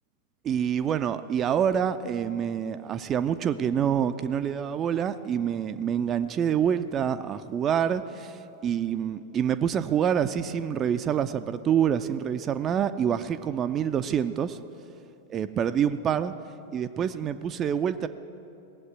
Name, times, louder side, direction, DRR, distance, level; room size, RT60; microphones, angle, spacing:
voice 1, 0.4-14.6 15.3-16.3 16.7-18.1, right 8 dB, 30° right, 10 dB, 0.4 m, -26 dB
17.5 x 7.9 x 9.0 m, 2.8 s
figure-of-eight pair, 90°, 0 cm